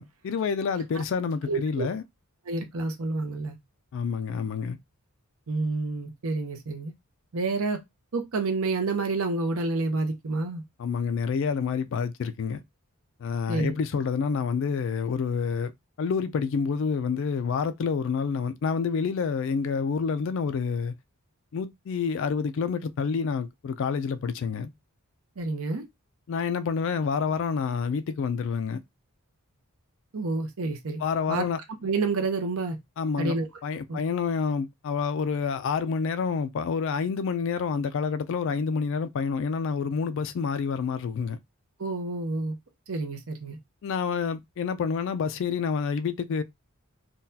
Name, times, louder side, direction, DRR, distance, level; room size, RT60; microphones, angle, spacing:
voice 1, 0.0-2.0 3.9-4.8 10.8-12.6 13.2-15.7 16.0-20.9 21.5-24.7 26.3-28.8 31.0-31.6 33.0-33.4 33.6-41.4 43.8-46.4, left 5 dB, 55° left, 0.3 m, -28 dB
voice 2, 1.4-1.9 2.5-3.6 5.5-6.9 7.3-7.8 8.1-10.6 13.5-13.7 25.4-25.8 30.1-31.0 31.3-31.4 31.8-32.8 33.2-33.5 33.9-34.0 41.8-42.5 42.9-43.6, right 3 dB, 70° right, 0.7 m, -29 dB
3.8 x 2.2 x 2.7 m
head